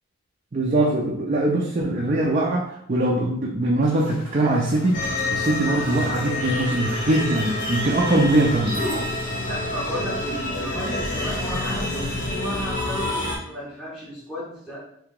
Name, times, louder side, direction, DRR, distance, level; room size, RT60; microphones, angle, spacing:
voice 1, 0.5-5.0 5.3-8.8, right 1 dB, 35° right, -3 dB, 0.5 m, -22 dB
sound 1, 3.8-9.0, left 3 dB, 60° left, 0.5 m, -38 dB
sound 2, 4.9-13.4, left 2 dB, 40° left, 0.8 m, -28 dB
voice 2, 9.5-14.8, equal, 5° right, -8 dB, 0.7 m, -33 dB
2.9 x 2.8 x 3.6 m, 0.73 s
head